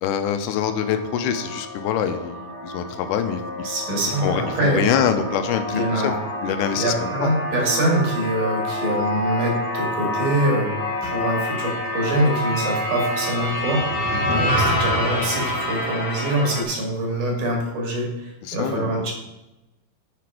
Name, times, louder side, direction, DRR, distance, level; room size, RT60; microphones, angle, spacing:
voice 1, 0.0-3.4 4.2-6.1 6.4-7.3 14.1-14.4 18.4-19.1, left 8 dB, 85° left, 8 dB, 2.1 m, -25 dB
sound 1, 0.6-16.6, left 1 dB, 25° left, 0.7 m, -27 dB
voice 2, 3.6-4.8 5.7-6.2 6.7-10.7 11.0-13.8 14.3-19.1, right 1 dB, 75° right, -1 dB, 3.4 m, -24 dB
6.7 x 5.9 x 4.8 m, 0.96 s
omnidirectional pair, 3.6 m